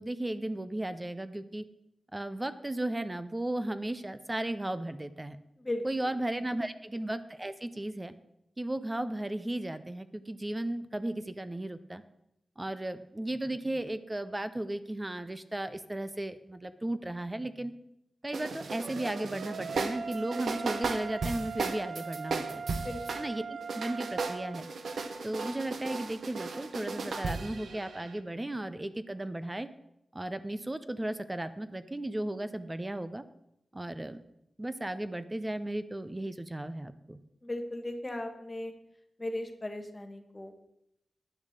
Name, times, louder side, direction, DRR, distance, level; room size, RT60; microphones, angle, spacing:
voice 1, 0.0-1.6 2.1-5.4 5.8-8.1 8.6-12.0 12.6-17.7 18.2-22.6 23.1-24.6 25.2-29.7 30.1-33.2 33.7-34.2 34.6-37.2, right 1 dB, 15° right, 12 dB, 0.6 m, -35 dB
sound 1, 18.3-23.3 23.6-28.2, right 4 dB, 70° right, 1.0 m, -36 dB
sound 2, 18.8-24.6, right 5 dB, 85° right, 0.4 m, -41 dB
voice 2, 22.8-23.2 37.4-38.7 39.2-40.6, left 1 dB, 20° left, 5 dB, 1.4 m, -37 dB
10.5 x 7.2 x 6.5 m, 0.82 s
wide cardioid pair, 105°, 0 cm